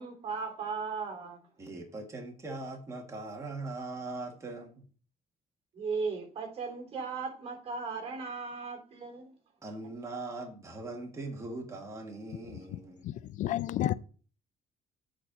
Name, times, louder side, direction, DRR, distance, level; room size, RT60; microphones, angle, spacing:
voice 1, 0.0-1.5 5.7-9.3, right 5 dB, 45° right, 3.3 m, -37 dB
voice 2, 1.6-4.8 9.6-13.1, right 2 dB, 20° right, 1.8 m, -40 dB
voice 3, 13.0-13.9, left 13 dB, 60° left, 0.4 m, -30 dB
8.4 x 4.4 x 5.2 m
cardioid pair, 150°, 14 cm